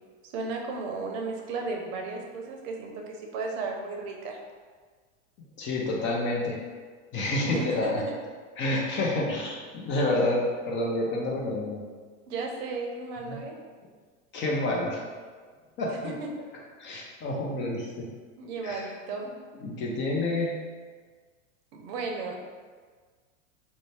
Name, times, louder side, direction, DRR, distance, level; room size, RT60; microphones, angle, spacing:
voice 1, 0.3-4.4 7.5-7.8 8.1-8.2 12.3-13.5 18.4-19.3 21.7-22.4, right 4 dB, 55° right, 1 dB, 0.6 m, -34 dB
voice 2, 5.6-6.6 7.1-8.0 8.6-11.8 13.3-13.4 14.3-15.0 15.8-16.1 16.8-18.1 18.6-18.9 19.6-20.5, left 2 dB, 30° left, -2 dB, 0.5 m, -28 dB
2.6 x 2.1 x 3.2 m, 1.5 s
hypercardioid pair, 105°, 38 cm